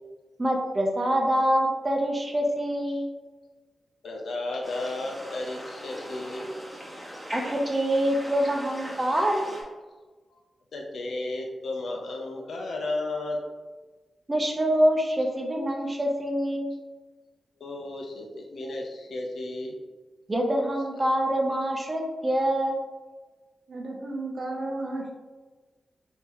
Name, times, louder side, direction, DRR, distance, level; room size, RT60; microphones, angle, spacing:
voice 1, 0.4-3.1 7.3-9.7 14.3-16.7 20.3-22.8, equal, 25° right, 1 dB, 0.7 m, -25 dB
voice 2, 4.0-6.5 10.3-10.4 10.7-13.4 17.6-19.8 20.7-21.1, left 2 dB, 80° left, 1 dB, 0.6 m, -34 dB
sound 1, 4.6-9.6, equal, 5° right, 1.1 m, -40 dB
voice 3, 23.7-25.1, right 2 dB, 75° right, -1 dB, 0.7 m, -33 dB
3.6 x 2.8 x 3.0 m, 1.3 s
cardioid pair, 70°, 0 cm